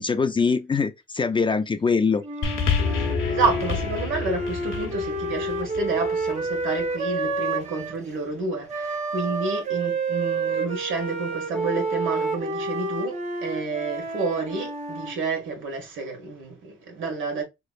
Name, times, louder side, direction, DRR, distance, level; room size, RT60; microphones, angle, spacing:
voice 1, 0.0-2.2, left 5 dB, 25° left, 0.4 m, -23 dB
Wind instrument woodwind instrument, 2.2-8.0 8.7-15.2, right 3 dB, 35° right, 1.0 m, -29 dB
sound 1, 2.4-7.0 7.8-7.9, left 5 dB, 80° left, 0.9 m, -28 dB
voice 2, 3.3-17.4, right 4 dB, 80° right, 1.6 m, -29 dB
3.8 x 3.2 x 2.3 m
cardioid pair, 90°, 20 cm